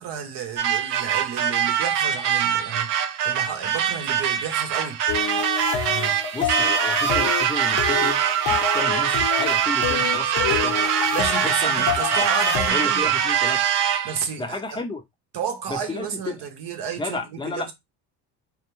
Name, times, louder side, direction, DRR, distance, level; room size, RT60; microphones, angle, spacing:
voice 1, 0.0-2.9 3.2-5.0 5.7-6.2 11.1-13.1 14.0-14.8 15.3-17.7, right 7 dB, 55° right, 0.8 m, -32 dB
sound 1, 0.6-14.2, right 9 dB, 90° right, 0.6 m, -23 dB
sound 2, 5.1-12.7, left 8 dB, 55° left, 0.7 m, -28 dB
voice 2, 6.3-8.2 8.5-10.8 11.4-11.9 12.1-12.3 12.7-13.6 14.4-15.0 15.7-16.5 17.0-17.7, left 3 dB, 10° left, 0.6 m, -32 dB
2.2 x 2.2 x 3.0 m
hypercardioid pair, 65°, 47 cm